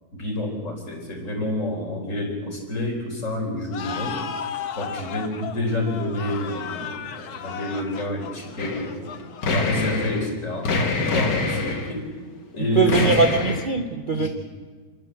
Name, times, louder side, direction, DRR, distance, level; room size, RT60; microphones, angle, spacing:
voice 1, 0.1-4.2 4.8-9.1 9.5-12.1 12.5-13.2 14.1-14.3, left 1 dB, 45° left, 0 dB, 4.6 m, -28 dB
sound 1, 3.7-10.2, left 7 dB, 65° left, 1.5 m, -35 dB
sound 2, 8.6-8.9 9.2-10.3 10.6-11.9 12.9-13.7, left 3 dB, 90° left, 2.3 m, -24 dB
voice 2, 12.7-14.3, right 5 dB, 40° right, 5 dB, 0.9 m, -21 dB
28.5 x 12.5 x 7.6 m, 1.4 s
omnidirectional pair, 1.8 m